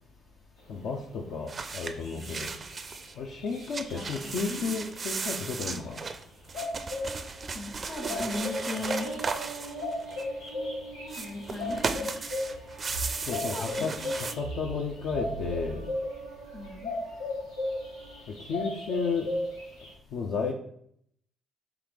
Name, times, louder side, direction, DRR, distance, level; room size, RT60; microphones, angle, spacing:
voice 1, 0.7-2.5 3.2-6.0 13.2-14.0 14.4-15.9 18.3-19.3 20.1-20.5, left 4 dB, 65° left, 0 dB, 0.5 m, -32 dB
sound 1, 1.5-3.1 3.5-10.5 11.0-14.3, right 4 dB, 40° right, 0.4 m, -36 dB
sound 2, 1.6-1.7 1.9-5.0 6.5-19.9, left 2 dB, 85° left, 1.0 m, -37 dB
voice 2, 2.1-2.6 3.9-4.7 7.5-9.1 11.2-12.1 13.2-14.1 16.5-16.9, left 3 dB, 40° left, 3 dB, 1.2 m, -38 dB
sound 3, 8.0-18.2, right 4 dB, 85° right, 0.6 m, -43 dB
4.7 x 2.9 x 3.6 m, 0.68 s
hypercardioid pair, 45°, 0 cm